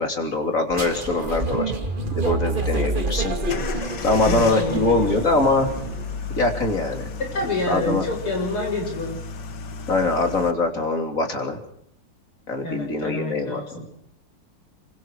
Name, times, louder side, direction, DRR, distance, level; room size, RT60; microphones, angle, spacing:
voice 1, 0.0-1.7 2.1-3.4 4.0-5.7 6.4-7.1 7.7-8.1 9.9-11.6 12.5-13.8, left 2 dB, 35° left, 4 dB, 3.6 m, -23 dB
sound 1, 0.7-6.3, right 2 dB, 25° right, 2.4 m, -28 dB
sound 2, 3.5-10.5, left 4 dB, 55° left, 1.9 m, -33 dB
voice 2, 4.2-5.2 7.2-9.2 12.6-13.8, left 2 dB, 90° left, 1 dB, 7.9 m, -28 dB
27.5 x 24.0 x 4.7 m, 0.71 s
omnidirectional pair, 2.3 m